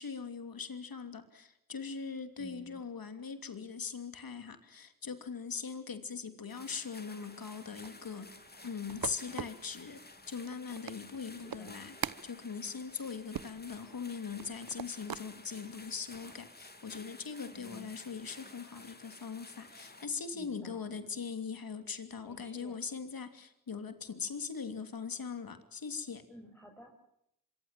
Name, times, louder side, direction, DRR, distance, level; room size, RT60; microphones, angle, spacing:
voice 1, 0.0-8.3 8.6-12.0 12.2-26.2, left 5 dB, 80° left, 8 dB, 3.0 m, -41 dB
voice 2, 2.4-2.8 11.4-11.8 17.5-17.9 20.3-21.2 22.2-22.8 26.3-26.9, equal, 5° left, 0 dB, 6.0 m, -53 dB
sound 1, 6.5-20.1, left 2 dB, 30° left, 3.3 m, -53 dB
sound 2, 7.8-15.3 15.8-16.4, right 8 dB, 85° right, 1.0 m, -44 dB
25.5 x 24.0 x 7.5 m, 0.79 s
cardioid pair, 45°, 35 cm